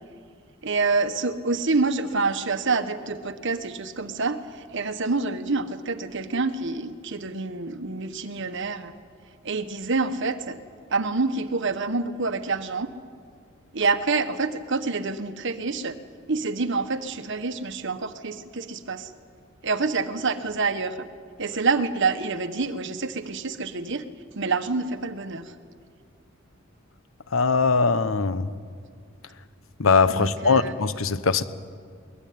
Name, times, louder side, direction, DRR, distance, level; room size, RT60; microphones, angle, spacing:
voice 1, 0.6-4.4 4.7-8.9 9.4-10.6 10.9-12.9 13.7-16.0 16.3-19.1 19.6-21.1 21.4-24.0 24.3-25.5 30.1-30.8, right 4 dB, 65° right, 1.4 m, -27 dB
voice 2, 27.3-28.5 29.8-31.4, left 4 dB, 80° left, 1.1 m, -21 dB
22.5 x 20.0 x 9.5 m
head